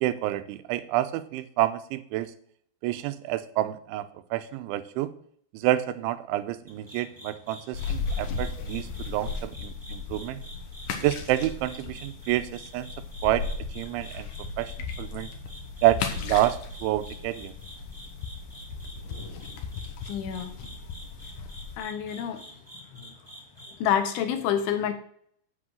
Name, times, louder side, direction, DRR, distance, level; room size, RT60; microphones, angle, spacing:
voice 1, 0.0-2.3 2.8-5.1 5.5-10.4 11.0-12.9 13.2-13.5 13.8-14.3 14.6-14.7 15.0-15.3 15.8-17.5, right 14 dB, 85° right, 12 dB, 3.1 m, -28 dB
sound 1, 6.7-24.0, equal, 10° right, 1.5 m, -48 dB
sound 2, 7.7-21.8, left 5 dB, 70° left, 2.0 m, -36 dB
voice 2, 20.1-20.5 21.8-22.4 23.8-24.9, left 9 dB, 90° left, 7 dB, 3.6 m, -27 dB
7.9 x 6.3 x 7.6 m, 0.63 s
omnidirectional pair, 5.3 m